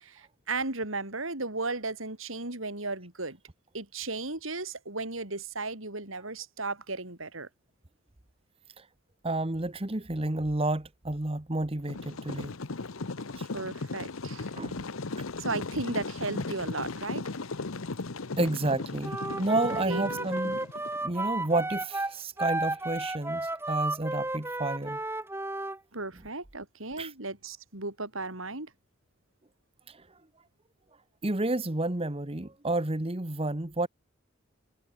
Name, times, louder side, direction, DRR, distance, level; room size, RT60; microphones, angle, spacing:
voice 1, 0.0-3.4 3.7-7.5 13.5-14.5 15.4-17.3 19.8-20.3 25.9-28.7, right 3 dB, 75° right, 4.9 m, -35 dB
voice 2, 9.2-12.5 13.4-13.5 14.6-14.8 18.4-20.6 21.0-25.0 26.1-26.3 27.0-27.1 29.9-30.1 31.2-33.9, right 2 dB, 30° right, 1.2 m, -30 dB
sound 1, 11.9-21.0, left 3 dB, 85° left, 1.1 m, -37 dB
Wind instrument woodwind instrument, 19.0-25.8, right 2 dB, 10° right, 5.2 m, -33 dB
head